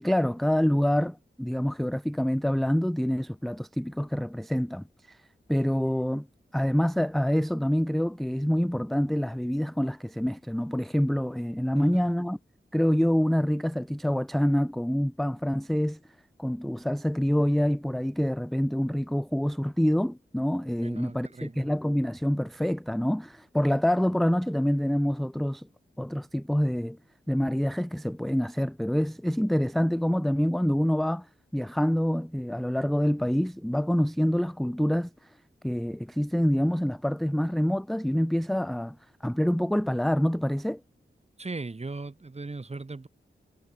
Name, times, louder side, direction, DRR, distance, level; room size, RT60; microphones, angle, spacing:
voice 1, 0.0-5.2 5.5-6.3 6.5-12.4 12.7-16.0 16.4-25.7 26.0-27.0 27.3-31.3 31.5-35.3 35.6-39.0 39.2-40.8, equal, ahead, 0.4 m, -26 dB
voice 2, 11.7-12.1 20.8-21.7 41.4-43.1, right 3 dB, 35° right, 2.1 m, -38 dB
wide cardioid pair, 110°, 20 cm